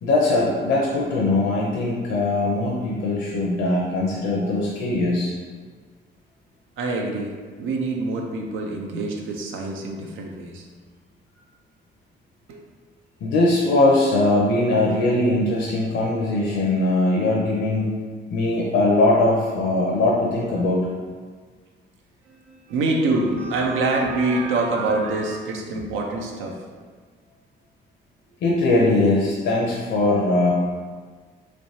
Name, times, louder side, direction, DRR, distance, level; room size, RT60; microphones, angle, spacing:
voice 1, 0.0-5.3 13.2-18.0 18.3-20.9 28.4-30.5, left 2 dB, 70° left, -3 dB, 0.6 m, -21 dB
voice 2, 6.8-10.7 12.5-12.6 22.3-26.6, right 2 dB, 80° right, 1 dB, 0.6 m, -25 dB
3.3 x 3.0 x 2.7 m, 1.5 s
cardioid pair, 90°, 20 cm